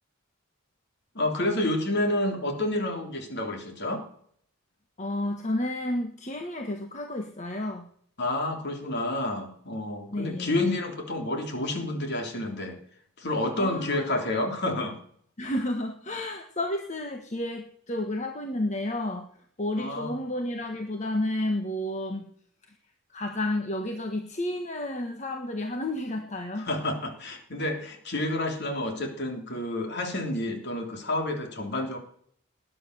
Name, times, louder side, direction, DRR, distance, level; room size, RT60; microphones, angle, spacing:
voice 1, 1.2-4.0 8.2-12.8 13.2-15.0 19.8-20.2 26.6-32.0, left 1 dB, 55° left, 4 dB, 3.5 m, -29 dB
voice 2, 5.0-7.9 10.1-10.6 13.6-14.0 15.4-19.3 19.6-22.3 23.1-26.7, left 1 dB, 35° left, 4 dB, 1.4 m, -31 dB
19.5 x 9.8 x 6.8 m, 0.62 s
head